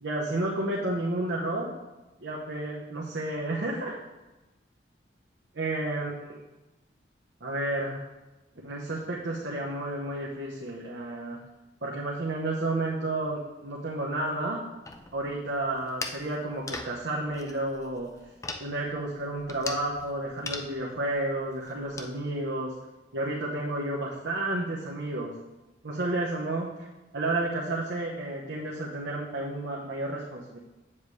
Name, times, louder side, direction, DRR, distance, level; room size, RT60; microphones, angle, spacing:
voice 1, 0.0-1.7 2.2-4.0 5.5-6.1 7.4-8.0 8.6-11.4 11.8-14.6 15.1-18.1 18.6-22.7 23.1-25.3 25.8-26.9 27.1-30.6, right 2 dB, 85° right, -3 dB, 1.0 m, -31 dB
sound 1, 14.8-22.1, left 3 dB, 15° left, 0.4 m, -41 dB
8.4 x 7.2 x 3.2 m, 1.1 s
head